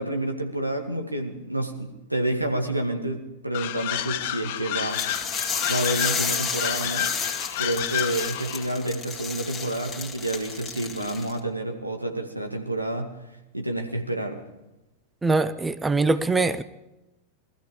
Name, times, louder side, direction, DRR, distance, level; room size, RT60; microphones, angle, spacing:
voice 1, 0.0-5.0 5.7-7.1 7.6-13.1 13.5-14.4, right 1 dB, 85° right, 3 dB, 2.0 m, -29 dB
sound 1, 3.5-8.7, left 12 dB, 50° left, 0.8 m, -30 dB
sound 2, 4.9-11.4, left 5 dB, 10° left, 2.2 m, -31 dB
voice 2, 15.2-16.6, right 3 dB, 10° right, 14 dB, 0.7 m, -22 dB
20.5 x 14.0 x 5.1 m, 0.99 s
figure-of-eight pair, 90°, 0 cm